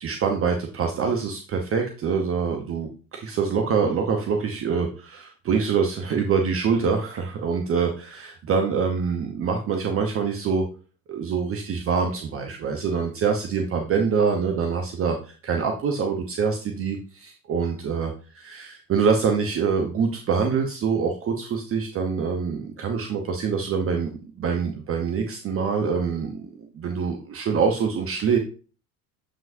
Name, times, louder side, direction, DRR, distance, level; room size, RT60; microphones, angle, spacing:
voice 1, 0.0-10.6 11.1-24.1 24.4-28.4, right 5 dB, 30° right, 3 dB, 0.9 m, -25 dB
7.6 x 5.0 x 2.6 m, 0.38 s
figure-of-eight pair, 70°, 45 cm